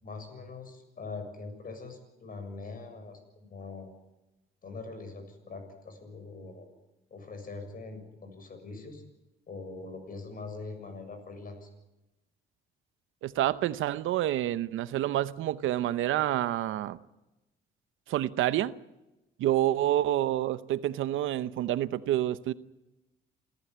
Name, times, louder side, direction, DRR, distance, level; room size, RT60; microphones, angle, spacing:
voice 1, 0.0-3.9 4.6-6.7 7.1-9.0 9.5-11.7, left 3 dB, 45° left, 7.1 m, -43 dB
voice 2, 13.2-17.0 18.1-18.7 19.4-22.5, right 13 dB, 85° right, 0.9 m, -28 dB
27.5 x 14.5 x 9.4 m
cardioid pair, 90°, 20 cm